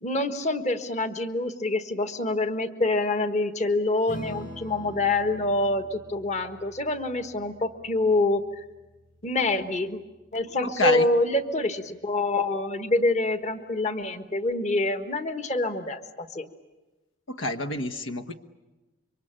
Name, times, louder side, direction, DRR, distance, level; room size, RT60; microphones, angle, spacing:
voice 1, 0.0-8.6 9.2-10.0 10.3-16.5, left 2 dB, 35° left, 9 dB, 1.4 m, -26 dB
Strum, 4.1-10.9, left 1 dB, 55° left, 7.0 m, -46 dB
voice 2, 10.6-11.1 17.3-18.3, left 2 dB, 85° left, 8 dB, 1.2 m, -27 dB
27.5 x 24.5 x 8.9 m, 1.1 s
head